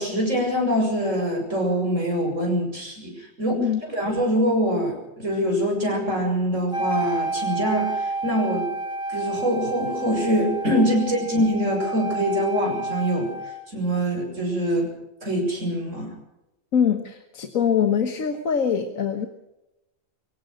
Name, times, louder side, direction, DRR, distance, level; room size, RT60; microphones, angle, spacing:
voice 1, 0.0-8.7 9.1-13.3 13.7-14.9 15.2-16.1, equal, 65° right, 2 dB, 6.6 m, -24 dB
Wind instrument woodwind instrument, 6.7-13.7, right 3 dB, 5° right, 3.2 m, -30 dB
voice 2, 16.7-19.3, left 7 dB, 80° left, 7 dB, 1.7 m, -23 dB
24.5 x 16.5 x 6.4 m, 0.96 s
omnidirectional pair, 1.4 m